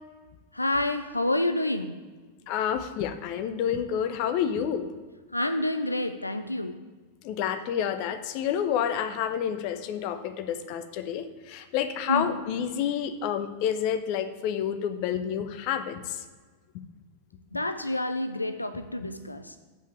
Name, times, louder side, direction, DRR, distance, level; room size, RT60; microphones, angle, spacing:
voice 1, 0.5-2.0 5.3-6.8 12.1-12.4 17.5-19.6, left 1 dB, 85° left, 9 dB, 0.4 m, -28 dB
voice 2, 2.5-4.9 7.2-16.2, left 9 dB, 45° left, 9 dB, 0.7 m, -29 dB
7.0 x 5.5 x 7.4 m, 1.4 s
figure-of-eight pair, 90°, 0 cm